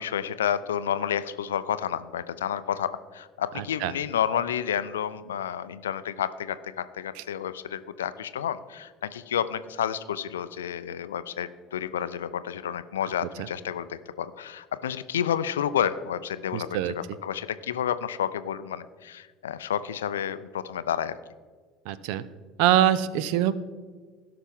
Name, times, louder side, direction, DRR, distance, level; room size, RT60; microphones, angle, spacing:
voice 1, 0.0-21.1, left 9 dB, 70° left, 14 dB, 0.4 m, -30 dB
voice 2, 3.5-3.9 16.5-16.9 21.9-22.2 22.6-23.5, right 12 dB, 60° right, 17 dB, 0.5 m, -24 dB
17.0 x 5.8 x 3.6 m, 1.5 s
figure-of-eight pair, 65°, 0 cm